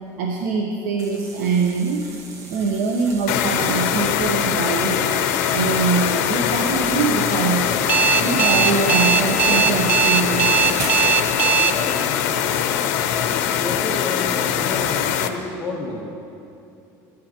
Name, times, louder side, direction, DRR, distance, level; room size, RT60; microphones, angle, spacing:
voice 1, 0.2-2.1 2.5-5.1 5.5-7.7 8.2-10.7, right 4 dB, 90° right, 1 dB, 1.0 m, -23 dB
sound 1, 1.0-11.4, right 2 dB, 45° right, 1.2 m, -36 dB
sound 2, 3.3-15.3, left 9 dB, 85° left, 0.7 m, -22 dB
Alarm, 7.9-11.7, right 7 dB, 25° right, 0.3 m, -18 dB
voice 2, 11.5-12.7 13.5-16.2, left 2 dB, 20° left, -2 dB, 1.1 m, -32 dB
16.5 x 11.5 x 2.9 m, 2.7 s
cardioid pair, 170°, 8 cm